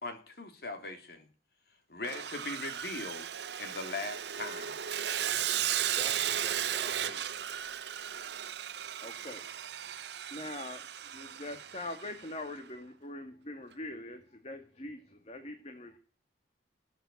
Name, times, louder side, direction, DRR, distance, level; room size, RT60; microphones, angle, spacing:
voice 1, 0.0-1.3 1.9-3.3 3.6-4.8, left 2 dB, 60° left, 6 dB, 3.3 m, -40 dB
Sawing, 2.0-12.3, right 10 dB, 70° right, 0.7 m, -35 dB
voice 2, 6.0-7.5, left 1 dB, 10° left, 3 dB, 4.5 m, -48 dB
voice 3, 9.0-9.4 10.3-10.8 11.1-16.0, left 2 dB, 35° left, 6 dB, 2.0 m, -43 dB
20.5 x 8.0 x 8.4 m, 0.38 s
head